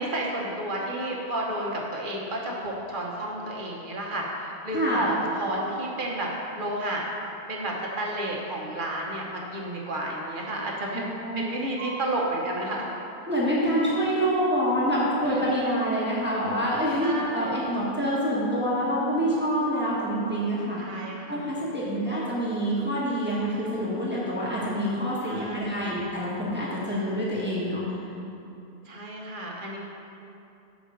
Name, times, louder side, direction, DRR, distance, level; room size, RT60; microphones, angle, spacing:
voice 1, 0.0-7.0 7.5-11.1 11.4-12.9 15.3-15.4 17.0-17.8 20.8-21.5 25.2-26.0 28.8-29.8, right 1 dB, 55° right, -2 dB, 1.1 m, -31 dB
voice 2, 4.7-5.1 10.9-11.4 11.8-11.9 13.3-20.8 21.3-27.8, equal, 10° right, -8 dB, 1.3 m, -26 dB
5.3 x 5.0 x 6.4 m, 2.8 s
omnidirectional pair, 1.0 m